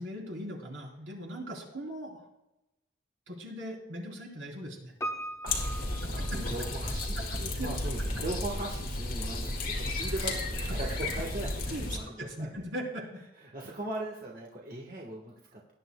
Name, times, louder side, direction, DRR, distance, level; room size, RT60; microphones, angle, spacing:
voice 1, 0.0-2.2 3.3-4.9 6.0-6.3 7.5-7.7 11.7-13.0, equal, 85° right, -1 dB, 3.5 m, -39 dB
Piano, 5.0-7.1 7.3-7.4, right 1 dB, 15° left, 1.0 m, -39 dB
voice 2, 5.4-12.6 13.4-15.7, right 2 dB, 45° right, -2 dB, 1.5 m, -39 dB
sound 1, 5.5-12.0, left 2 dB, 45° left, 2.1 m, -33 dB
18.5 x 10.5 x 2.3 m, 0.93 s
head